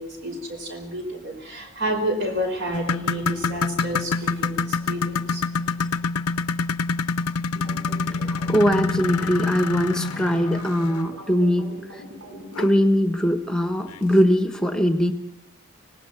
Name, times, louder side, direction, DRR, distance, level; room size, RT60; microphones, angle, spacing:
voice 1, 0.0-6.0, equal, 50° right, 4 dB, 5.0 m, -30 dB
sound 1, 2.7-11.2 12.6-12.7 13.2-13.3 13.9-14.0, left 4 dB, 85° left, 0.7 m, -26 dB
sound 2, 7.5-12.7, equal, 65° right, 6.5 m, -42 dB
voice 2, 8.5-12.0 12.6-15.1, equal, 5° left, 6 dB, 1.3 m, -21 dB
25.0 x 19.0 x 6.1 m, 0.77 s
head